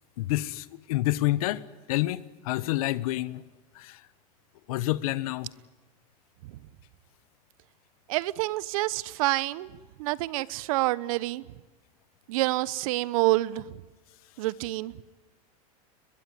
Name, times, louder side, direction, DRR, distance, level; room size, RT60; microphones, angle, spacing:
voice 1, 0.2-1.6 1.9-3.4 3.8-4.0 4.7-5.5, left 17 dB, 70° left, 1.2 m, -28 dB
voice 2, 8.1-9.7 10.0-11.4 12.3-13.6 14.4-14.9, right 18 dB, 65° right, 1.0 m, -27 dB
22.5 x 22.0 x 9.5 m
supercardioid pair, 135°, 19 cm